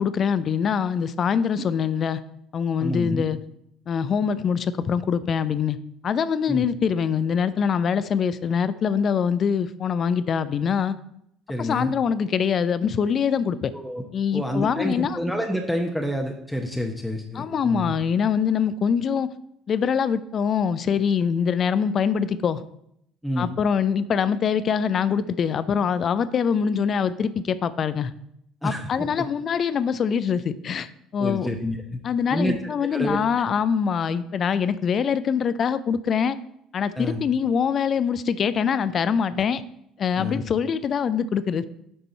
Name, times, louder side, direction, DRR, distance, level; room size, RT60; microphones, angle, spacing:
voice 1, 0.0-2.2 2.5-3.4 3.9-5.8 6.0-11.0 11.6-13.7 14.1-15.2 17.3-19.3 19.7-22.6 23.4-28.1 28.6-31.5 32.0-36.4 36.7-39.6 40.0-41.7, left 7 dB, 40° left, 15 dB, 0.4 m, -24 dB
voice 2, 2.8-3.2 6.5-6.6 11.5-11.9 13.7-14.0 14.3-17.9 23.2-23.5 28.6-29.2 31.2-32.0 32.3-32.5 32.9-33.2 37.0-37.2 40.2-40.4, equal, ahead, 2 dB, 0.9 m, -28 dB
8.6 x 5.2 x 4.3 m, 0.75 s
figure-of-eight pair, 55°, 0 cm